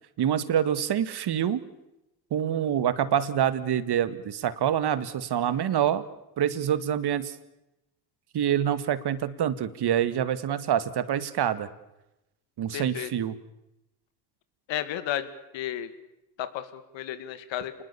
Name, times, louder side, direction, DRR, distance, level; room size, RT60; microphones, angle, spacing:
voice 1, 0.2-1.6 2.3-6.0 6.4-7.4 8.3-11.7 12.6-13.4, right 9 dB, 55° right, 14 dB, 2.1 m, -26 dB
voice 2, 12.7-13.1 14.7-15.3 15.5-15.9 16.4-17.7, left 11 dB, 70° left, 12 dB, 2.5 m, -32 dB
28.0 x 21.0 x 7.1 m, 0.92 s
supercardioid pair, 65°, 46 cm